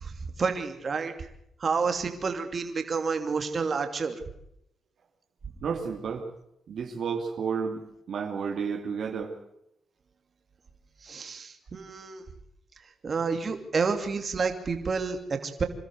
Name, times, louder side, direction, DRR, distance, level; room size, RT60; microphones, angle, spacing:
voice 1, 0.0-1.1 1.6-4.2 11.0-12.2 13.0-15.6, right 5 dB, 50° right, 6 dB, 2.9 m, -29 dB
voice 2, 5.6-6.3 6.7-9.4, right 6 dB, 65° right, 3 dB, 2.5 m, -31 dB
26.5 x 13.5 x 8.0 m, 0.78 s
cardioid pair, 70°, 0 cm